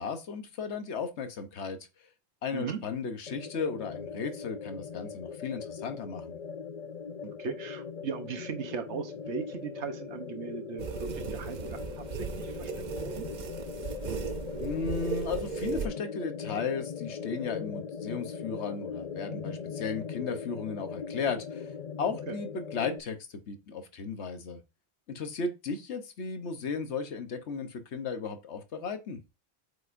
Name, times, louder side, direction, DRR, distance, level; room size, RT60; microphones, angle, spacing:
voice 1, 0.0-1.8 2.4-6.4 14.6-21.7 22.0-24.6 25.1-29.2, left 5 dB, 80° left, 1.2 m, -35 dB
sound 1, 3.3-23.0, left 6 dB, 55° left, 0.4 m, -40 dB
voice 2, 7.2-13.3 22.3-22.4, right 6 dB, 80° right, 1.2 m, -38 dB
sound 2, 10.8-15.9, right 6 dB, 50° right, 0.6 m, -36 dB
7.9 x 5.2 x 2.5 m
omnidirectional pair, 1.1 m